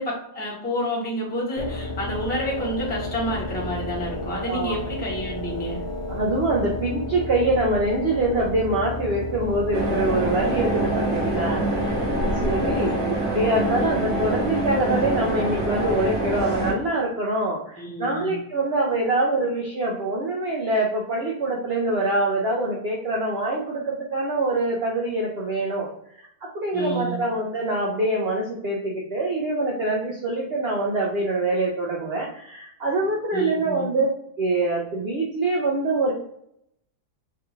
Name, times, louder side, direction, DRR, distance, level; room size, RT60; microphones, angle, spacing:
voice 1, 0.0-5.8 17.8-18.4 26.7-27.2 33.3-33.9, equal, 10° left, -4 dB, 0.7 m, -29 dB
sound 1, 1.6-13.3, left 2 dB, 80° left, 0.6 m, -32 dB
voice 2, 4.5-4.9 6.1-12.0 12.4-25.9 26.2-26.3 26.5-34.1 34.4-36.1, right 2 dB, 75° right, -2 dB, 0.5 m, -24 dB
sound 2, 9.7-16.7, right 1 dB, 50° right, 1.0 m, -25 dB
3.5 x 2.3 x 2.9 m, 0.73 s
omnidirectional pair, 1.7 m